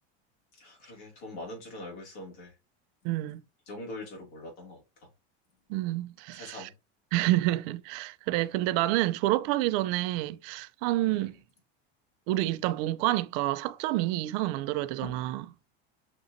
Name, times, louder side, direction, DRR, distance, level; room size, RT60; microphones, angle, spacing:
voice 1, 0.5-2.5 3.7-4.8 6.3-6.7 11.0-11.3 15.0-15.2, left 2 dB, 80° left, 2.4 m, -43 dB
voice 2, 3.0-3.4 5.7-6.7 7.1-11.4 12.3-15.4, right 16 dB, 60° right, 0.5 m, -28 dB
6.0 x 2.5 x 2.7 m
supercardioid pair, 115°, 33 cm